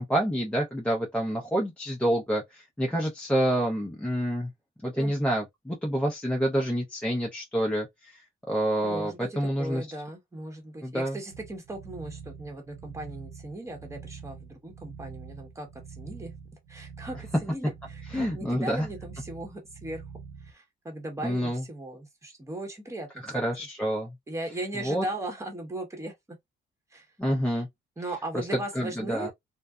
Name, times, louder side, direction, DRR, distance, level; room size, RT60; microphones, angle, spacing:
voice 1, 0.0-4.5 4.8-9.8 10.8-11.2 18.1-18.9 21.2-21.6 23.2-24.2 24.8-25.0 27.2-27.7 28.3-28.4 28.8-29.3, equal, 5° left, 0.6 m, -28 dB
voice 2, 8.8-16.3 16.7-20.0 20.4-23.2 23.6-23.7 24.3-26.4 26.9-27.1 28.0-29.3, right 1 dB, 15° right, 1.0 m, -38 dB
sound 1, 11.3-20.5, right 6 dB, 75° right, 0.6 m, -45 dB
2.5 x 2.1 x 2.2 m
cardioid pair, 90°, 20 cm